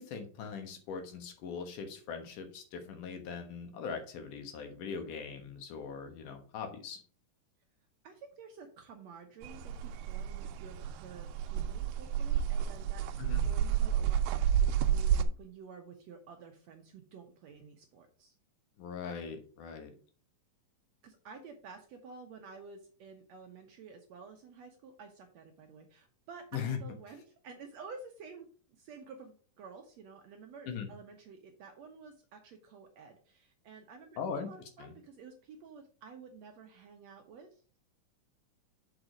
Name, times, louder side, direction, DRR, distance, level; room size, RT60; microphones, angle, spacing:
voice 1, 0.0-7.0 13.2-13.4 18.8-19.9 26.5-26.8 30.7-30.9 34.2-34.5 34.8-34.9, left 6 dB, 70° left, 6 dB, 2.7 m, -40 dB
voice 2, 8.0-13.0 13.4-14.2 14.6-18.3 21.0-28.5 28.8-37.6, right 5 dB, 70° right, 4 dB, 1.7 m, -51 dB
sound 1, 9.4-15.2, right 9 dB, 85° right, 2.4 m, -30 dB
6.8 x 5.0 x 5.0 m, 0.41 s
omnidirectional pair, 3.9 m